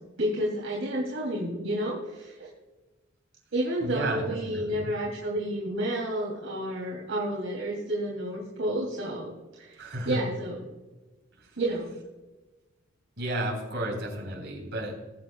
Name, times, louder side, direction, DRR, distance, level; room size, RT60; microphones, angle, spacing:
voice 1, 0.2-2.5 3.5-9.3 9.6-10.6 11.5-11.9, right 1 dB, 75° right, -4 dB, 3.0 m, -30 dB
voice 2, 3.8-4.9 9.8-10.2 13.2-15.0, right 1 dB, 55° right, 0 dB, 4.1 m, -32 dB
21.5 x 7.9 x 2.3 m, 1.1 s
head